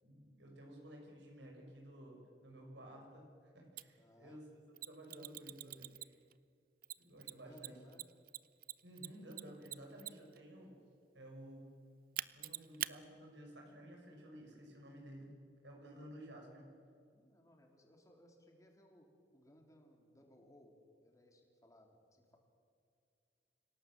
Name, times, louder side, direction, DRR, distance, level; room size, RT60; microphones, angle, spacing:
voice 1, 0.0-4.5 4.8-6.2 7.0-7.8 8.8-10.8 11.1-11.7 12.3-15.3 15.6-16.7, right 1 dB, 85° right, 0 dB, 6.5 m, -54 dB
Mechanisms, 3.8-3.9 4.8-6.3 6.8-10.4 12.2-12.9, right 14 dB, 55° right, 0.5 m, -43 dB
voice 2, 4.0-4.4 7.2-8.0 17.1-20.7 21.0-22.4, equal, 20° left, 2 dB, 3.4 m, -64 dB
26.5 x 17.5 x 7.7 m, 2.3 s
head